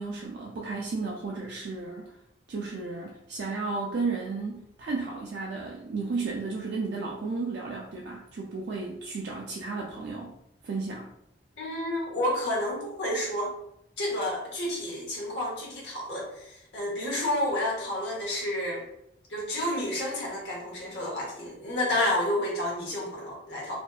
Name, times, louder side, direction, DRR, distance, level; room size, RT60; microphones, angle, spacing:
voice 1, 0.0-2.2 2.5-10.3 10.6-11.1, right 3 dB, 65° right, -2 dB, 0.3 m, -33 dB
voice 2, 11.6-13.5 14.0-18.8 19.3-23.8, left 1 dB, 70° left, -3 dB, 0.8 m, -30 dB
2.5 x 2.3 x 2.3 m, 0.81 s
head